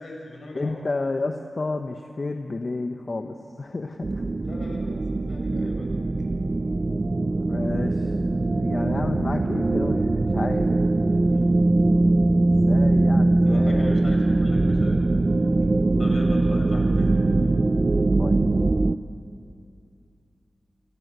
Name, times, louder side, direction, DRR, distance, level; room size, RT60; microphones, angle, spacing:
voice 1, 0.0-0.8 4.4-6.0 11.1-11.6 13.4-15.0 16.0-17.1, left 2 dB, 65° left, 1 dB, 6.2 m, -41 dB
voice 2, 0.5-4.2 7.0-7.1 7.5-8.1 8.6-10.8 12.4-14.0 18.2-18.4, left 3 dB, 45° left, 5 dB, 1.2 m, -31 dB
sound 1, 4.0-19.0, right 2 dB, 40° right, 0.7 m, -21 dB
28.0 x 25.0 x 8.1 m, 2.5 s
wide cardioid pair, 75°, 0 cm